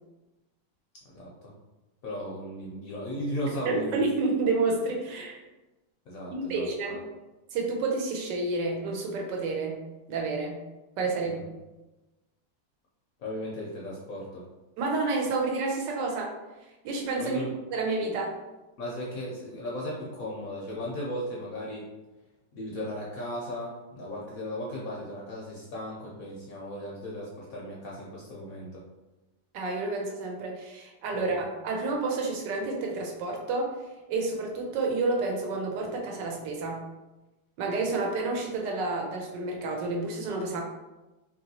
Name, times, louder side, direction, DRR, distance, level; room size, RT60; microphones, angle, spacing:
voice 1, 1.1-1.5 2.0-4.1 6.1-7.0 11.2-11.4 13.2-14.4 17.2-17.5 18.8-21.9 22.5-28.8 31.1-31.4, equal, 65° left, -4 dB, 0.9 m, -36 dB
voice 2, 3.7-5.4 6.3-7.0 7.5-9.8 10.1-10.6 11.0-11.4 14.8-16.3 16.8-17.4 17.7-18.4 29.5-33.8 34.1-36.8 37.6-40.6, right 3 dB, 75° right, 0 dB, 1.3 m, -29 dB
3.0 x 2.9 x 2.7 m, 1.1 s
omnidirectional pair, 1.9 m